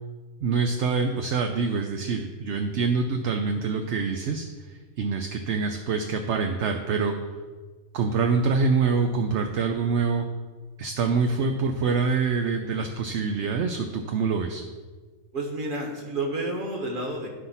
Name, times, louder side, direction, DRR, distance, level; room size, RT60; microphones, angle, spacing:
voice 1, 0.4-7.1 7.9-10.3 10.8-14.6, right 4 dB, 65° right, 5 dB, 0.9 m, -25 dB
voice 2, 15.3-17.3, right 2 dB, 40° right, 0 dB, 1.5 m, -30 dB
11.5 x 4.0 x 5.7 m, 1.4 s
omnidirectional pair, 1.4 m